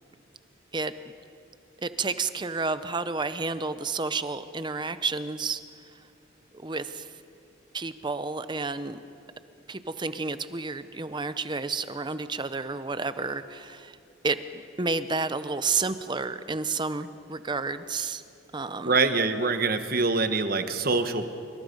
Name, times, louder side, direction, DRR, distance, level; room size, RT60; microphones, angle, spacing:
voice 1, 1.8-5.6 6.5-7.1 7.7-9.0 9.7-14.0 14.2-18.2 18.5-18.9, right 4 dB, 20° right, 12 dB, 0.7 m, -30 dB
voice 2, 18.8-21.3, right 3 dB, 45° right, 9 dB, 1.2 m, -24 dB
26.5 x 23.5 x 5.3 m, 2.5 s
head